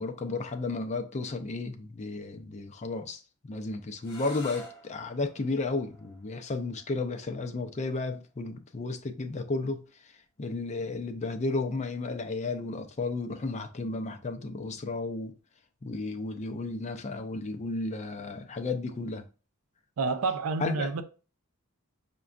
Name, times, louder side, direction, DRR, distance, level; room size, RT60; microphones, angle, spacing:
voice 1, 0.0-10.1 10.4-15.3 15.8-19.3 20.6-20.9, left 3 dB, 30° left, 0.4 m, -33 dB
sound 1, 4.0-9.7, left 1 dB, 50° left, 0.9 m, -51 dB
voice 2, 20.0-21.0, right 4 dB, 70° right, 0.5 m, -29 dB
6.0 x 2.2 x 2.4 m
head